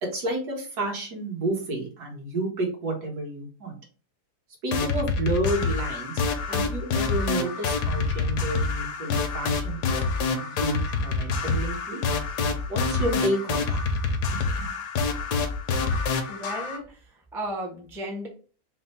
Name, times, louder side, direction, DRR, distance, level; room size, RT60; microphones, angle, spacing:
voice 1, 0.0-3.8 4.6-6.2 6.5-12.0 12.7-13.8 14.6-14.7, right 2 dB, 70° right, -1 dB, 1.9 m, -30 dB
sound 1, 4.7-16.8, left 4 dB, 85° left, 1.3 m, -27 dB
voice 2, 16.2-18.3, right 1 dB, 5° right, 0 dB, 0.4 m, -35 dB
4.2 x 2.1 x 4.2 m, 0.38 s
omnidirectional pair, 1.7 m